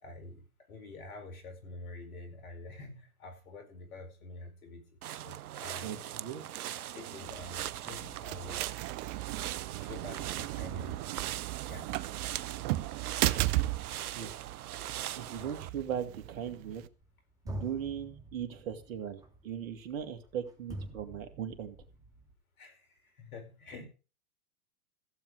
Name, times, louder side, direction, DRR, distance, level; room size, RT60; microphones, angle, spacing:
voice 1, 0.0-6.0 6.8-8.7 9.8-11.0 11.6-12.1 15.3-15.6 22.6-23.9, left 2 dB, 75° left, 8 dB, 4.7 m, -47 dB
sound 1, 5.0-15.7, right 12 dB, 85° right, 0.6 m, -41 dB
voice 2, 5.8-6.5 14.2-14.5 15.2-16.8 17.4-21.8, right 8 dB, 65° right, 8 dB, 2.2 m, -38 dB
sound 2, 7.3-16.9, right 17 dB, 45° right, 0.8 m, -36 dB
sound 3, 17.0-17.1 17.5-22.3, right 1 dB, 10° right, 2.9 m, -45 dB
15.5 x 7.7 x 4.8 m, 0.34 s
hypercardioid pair, 110°, 43 cm